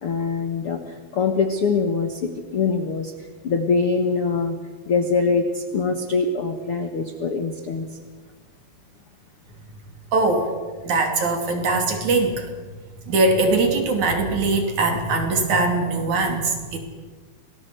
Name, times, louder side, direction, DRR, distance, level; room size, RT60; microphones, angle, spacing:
voice 1, 0.0-4.6 4.9-8.0, left 4 dB, 55° left, 6 dB, 1.5 m, -23 dB
voice 2, 10.1-10.6 10.8-12.5 13.0-16.8, right 3 dB, 50° right, 4 dB, 4.0 m, -21 dB
27.0 x 19.0 x 8.1 m, 1.4 s
omnidirectional pair, 4.8 m